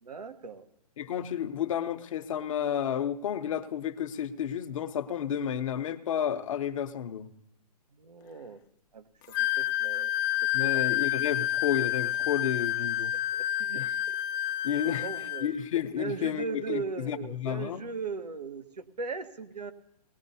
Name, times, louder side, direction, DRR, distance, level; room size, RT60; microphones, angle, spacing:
voice 1, 0.0-0.7 8.0-8.6 8.9-10.1 10.4-10.8 13.3-14.2 14.8-15.5 16.0-19.7, right 4 dB, 90° right, 7 dB, 1.3 m, -38 dB
voice 2, 1.0-7.3 10.5-13.1 13.8-13.9 14.6-15.1 15.4-17.8, left 9 dB, 55° left, 10 dB, 0.9 m, -31 dB
Wind instrument woodwind instrument, 9.3-15.5, left 13 dB, 30° left, 0.6 m, -29 dB
19.0 x 18.0 x 2.8 m, 0.81 s
hypercardioid pair, 140°, 20 cm